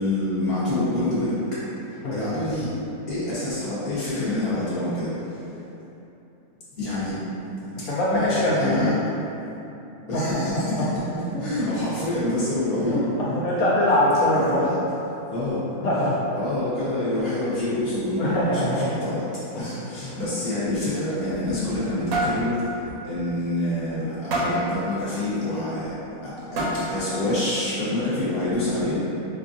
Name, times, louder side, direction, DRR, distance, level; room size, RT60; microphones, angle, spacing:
voice 1, 0.0-1.4 2.1-2.7 3.1-5.1 6.8-7.2 8.1-8.9 10.1-13.0 14.3-14.7 15.3-15.6 16.3-19.2 19.6-22.6 23.0-25.9 26.2-29.0, left 1 dB, 45° left, -11 dB, 1.2 m, -26 dB
voice 2, 7.8-8.9 10.1-10.2 10.8-10.9 12.9-13.0 13.3-14.7 15.8-16.2 18.2-18.9, left 1 dB, 75° left, -9 dB, 1.1 m, -22 dB
sound 1, 21.1-21.9 22.1-22.4 22.9-23.0 23.4-23.5 24.3-24.7 25.8-25.9 26.6-27.0, right 1 dB, 75° right, 1.0 m, -26 dB
4.3 x 2.4 x 2.5 m, 2.9 s
omnidirectional pair, 1.6 m